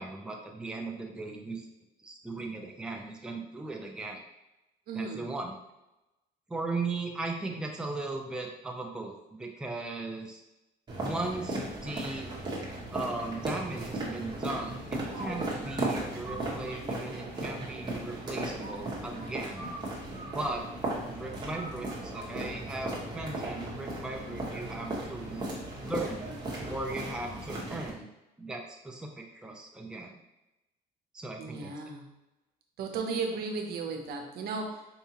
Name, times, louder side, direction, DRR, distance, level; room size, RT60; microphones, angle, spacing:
voice 1, 0.0-1.6 2.0-4.2 4.9-5.5 6.5-10.4 11.0-12.3 12.9-19.7 20.3-20.6 21.1-25.4 25.8-26.3 26.7-28.1 28.4-30.2 31.1-31.7, right 2 dB, 5° right, 1 dB, 0.4 m, -37 dB
voice 2, 4.9-5.2 15.4-15.6 31.4-32.1 32.8-34.9, right 4 dB, 65° right, 2 dB, 0.7 m, -35 dB
sound 1, 10.9-27.9, right 1 dB, 25° right, 1.2 m, -36 dB
4.6 x 2.7 x 2.9 m, 0.97 s
cardioid pair, 110°, 17 cm